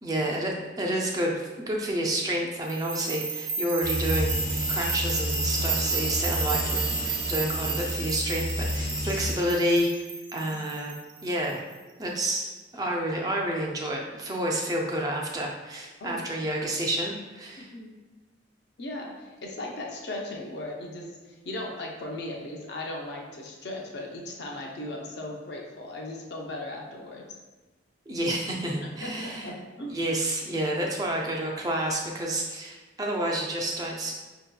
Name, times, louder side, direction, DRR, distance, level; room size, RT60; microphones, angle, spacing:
voice 1, 0.0-9.9 10.3-11.6 12.0-12.5 12.7-17.7 28.1-29.5 29.9-34.1, right 1 dB, 20° right, -1 dB, 0.3 m, -29 dB
sound 1, 2.7-11.7, right 6 dB, 80° right, 0.7 m, -32 dB
sound 2, 3.8-9.3, left 1 dB, 20° left, 0.7 m, -30 dB
voice 2, 18.8-27.2 29.0-30.0, left 1 dB, 55° left, -1 dB, 0.6 m, -37 dB
5.4 x 2.7 x 2.2 m, 1.2 s
head